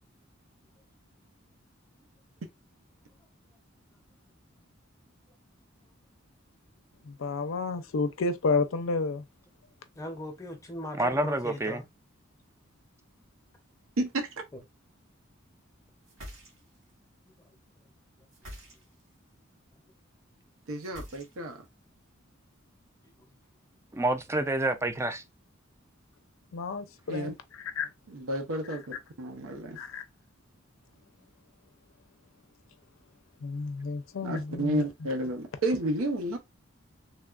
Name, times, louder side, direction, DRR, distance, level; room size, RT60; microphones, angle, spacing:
voice 1, 4.3-4.7 5.3-5.4 9.9-11.9 14.5-14.6 17.4-17.9 18.2-18.3 19.7-19.9 23.2-23.4, left 1 dB, 15° left, 0.7 m, -42 dB
voice 2, 7.1-9.2 26.5-27.9 28.7-29.0 29.8-30.0 33.4-34.8, left 3 dB, 70° left, 0.5 m, -31 dB
voice 3, 11.0-11.8 23.9-25.2, right 2 dB, 15° right, 0.3 m, -28 dB
voice 4, 14.0-14.3 20.7-21.6 27.1-27.3 28.1-29.8 34.2-36.4, right 1 dB, 90° right, 0.6 m, -31 dB
sound 1, 16.1-16.9 18.3-19.1 20.8-21.7, equal, 70° right, 1.3 m, -46 dB
3.2 x 2.2 x 2.3 m
head